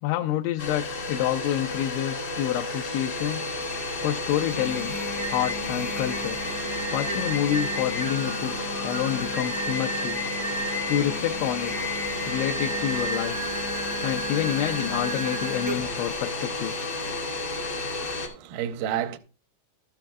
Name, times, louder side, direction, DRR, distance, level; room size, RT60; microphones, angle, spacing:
voice 1, 0.0-3.4 4.0-5.0 5.3-6.4 6.9-8.5 8.8-10.2 10.9-11.7 12.3-13.4 14.0-16.9, left 12 dB, 85° left, 2.9 m, -28 dB
Domestic sounds home sounds, 0.6-18.3, left 2 dB, 60° left, 1.0 m, -32 dB
Singing, 4.3-16.1, right 1 dB, 35° left, 0.4 m, -34 dB
voice 2, 18.0-19.2, right 10 dB, 85° right, 2.2 m, -31 dB
13.0 x 8.8 x 2.3 m
omnidirectional pair, 5.2 m